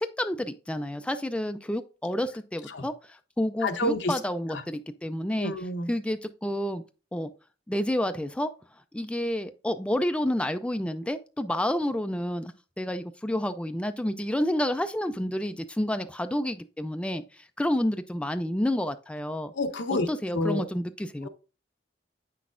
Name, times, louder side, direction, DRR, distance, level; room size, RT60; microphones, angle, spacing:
voice 1, 0.0-5.5 5.9-6.8 7.1-7.3 7.7-8.5 8.9-19.5 19.9-21.3, left 1 dB, 5° left, 0.3 m, -29 dB
voice 2, 3.6-4.2 4.5-4.6 5.4-5.9 19.5-20.1 20.3-20.7 21.2-21.3, left 2 dB, 85° left, 0.9 m, -28 dB
8.3 x 6.0 x 2.5 m
head